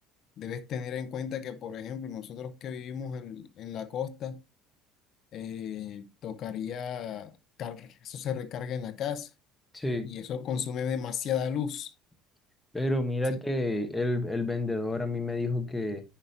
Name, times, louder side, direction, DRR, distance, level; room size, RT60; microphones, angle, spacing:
voice 1, 0.4-4.4 5.3-7.3 7.6-9.3 10.0-11.9, left 8 dB, 45° left, 0.6 m, -34 dB
voice 2, 9.7-10.1 12.7-16.0, left 2 dB, 5° left, 1.0 m, -29 dB
9.9 x 5.0 x 2.8 m
cardioid pair, 150°, 0 cm